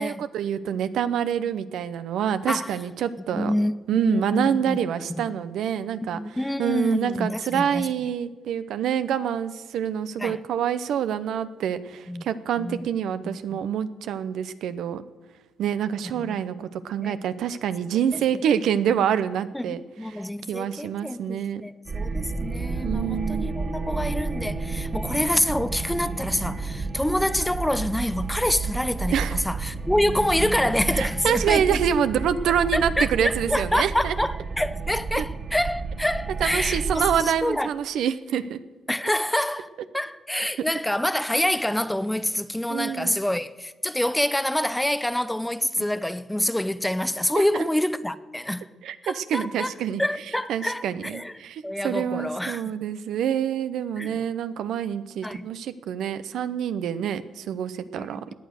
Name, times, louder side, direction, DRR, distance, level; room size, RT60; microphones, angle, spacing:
voice 1, 0.0-3.5 3.9-6.2 6.6-15.0 15.6-19.8 20.1-21.6 22.8-23.5 25.2-25.3 29.1-29.4 30.9-34.1 35.2-35.3 36.4-38.6 42.7-43.2 47.3-47.6 48.8-50.0 50.5-58.3, right 9 dB, 75° right, 0.8 m, -26 dB
voice 2, 3.3-4.8 5.2-5.3 6.1-7.9 10.2-10.4 12.1-12.2 12.6-12.9 13.2-13.6 16.2-16.4 17.0-17.2 18.1-18.4 19.5-31.8 32.7-37.7 38.9-39.7 39.9-48.7 49.0-49.7 50.0-51.3 51.6-52.7 54.0-54.2 55.2-55.5 57.9-58.3, left 1 dB, 5° left, 0.7 m, -27 dB
sound 1, 21.9-37.2, right 4 dB, 50° right, 2.5 m, -31 dB
17.5 x 9.4 x 6.5 m
cardioid pair, 90°, 0 cm